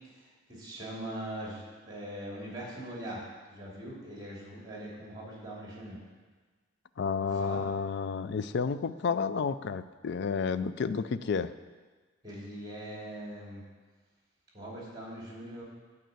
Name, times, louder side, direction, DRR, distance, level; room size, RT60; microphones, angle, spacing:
voice 1, 0.2-6.0 7.2-7.6 12.2-13.7 14.5-15.6, right 1 dB, 20° right, -4 dB, 2.7 m, -41 dB
voice 2, 7.0-11.5, left 5 dB, 55° left, 13 dB, 0.4 m, -31 dB
9.2 x 5.5 x 7.7 m, 1.4 s
head